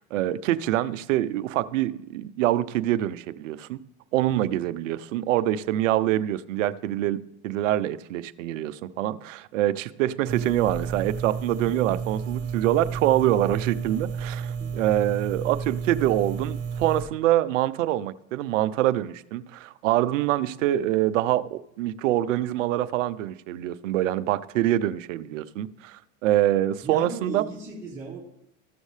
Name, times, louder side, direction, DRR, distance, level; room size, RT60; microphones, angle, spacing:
voice 1, 0.0-3.8 4.1-27.4, right 13 dB, 80° right, 0.6 m, -25 dB
sound 1, 10.3-17.0, right 6 dB, 35° right, 1.9 m, -32 dB
voice 2, 14.4-14.7 26.8-28.2, right 3 dB, 10° right, 3.2 m, -37 dB
14.0 x 6.4 x 3.2 m
hypercardioid pair, 100°, 37 cm